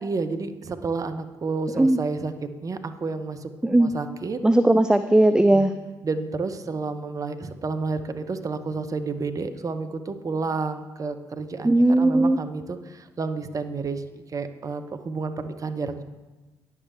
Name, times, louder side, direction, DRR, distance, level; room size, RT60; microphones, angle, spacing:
voice 1, 0.0-3.5 3.8-4.4 5.5-5.7 6.0-16.0, right 4 dB, 35° right, 9 dB, 0.8 m, -30 dB
voice 2, 4.4-5.7 11.6-12.4, right 1 dB, 10° right, 10 dB, 0.3 m, -18 dB
9.7 x 7.1 x 3.5 m, 1.2 s
figure-of-eight pair, 45°, 10 cm